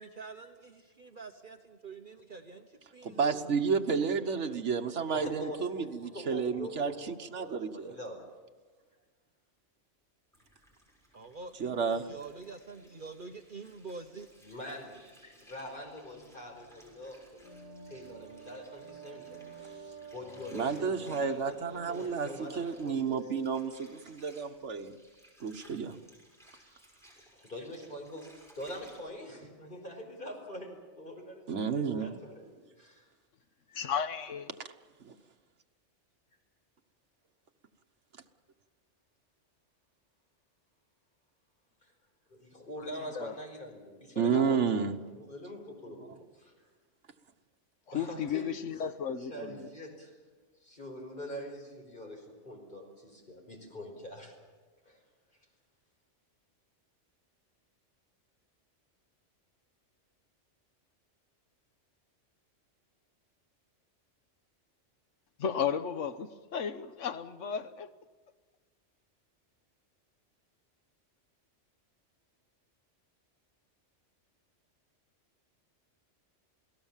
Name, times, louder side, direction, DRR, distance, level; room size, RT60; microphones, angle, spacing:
voice 1, 0.0-3.6 4.0-4.6 11.1-14.3, right 4 dB, 45° right, 1.2 m, -47 dB
voice 2, 3.0-8.0 11.6-12.1 20.5-24.9 25.4-26.0 31.5-32.2 35.0-35.1 44.2-44.9 46.0-46.1, right 6 dB, 75° right, 1.5 m, -31 dB
voice 3, 5.1-8.2 14.4-17.4 17.9-23.4 27.3-28.3 28.5-33.0 33.7-33.8 41.8-41.9 42.3-46.5 47.9-48.5 49.2-50.1 50.6-54.3 54.8-55.0, equal, 45° left, 5.0 m, -44 dB
Water, 10.3-29.0, equal, ahead, 6.8 m, -60 dB
sound 1, 16.0-21.7, right 2 dB, 20° right, 7.7 m, -49 dB
voice 4, 33.7-34.5 43.2-43.3 47.9-49.7 65.4-67.9, left 7 dB, 90° left, 1.4 m, -34 dB
28.5 x 18.0 x 7.4 m
omnidirectional pair, 1.2 m